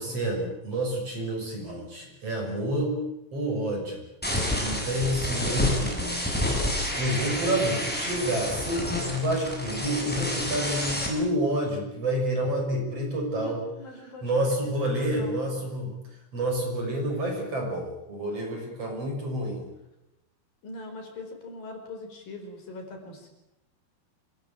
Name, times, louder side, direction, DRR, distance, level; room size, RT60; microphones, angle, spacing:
voice 1, 0.0-3.0 3.3-4.0 4.6-6.2 6.9-13.6 14.2-15.9 16.3-19.7, right 1 dB, 35° right, 1 dB, 6.9 m, -29 dB
sound 1, 4.2-11.1, left 1 dB, ahead, 7.2 m, -29 dB
voice 2, 13.3-14.3 14.8-15.7 20.6-23.3, left 2 dB, 55° left, 3 dB, 6.2 m, -42 dB
26.5 x 21.0 x 9.1 m, 0.91 s
omnidirectional pair, 5.0 m